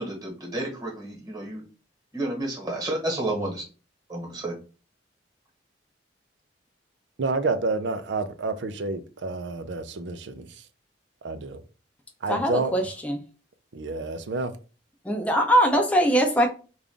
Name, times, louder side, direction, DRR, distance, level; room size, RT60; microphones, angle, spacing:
voice 1, 0.0-1.6 2.1-3.6 4.1-4.6, right 1 dB, 20° right, 1.3 m, -31 dB
voice 2, 7.2-10.4 11.2-11.6 12.2-12.7 13.7-14.5, right 3 dB, 65° right, 0.5 m, -29 dB
voice 3, 12.3-13.2 15.0-16.5, equal, 10° left, 0.5 m, -22 dB
3.4 x 2.5 x 3.7 m
head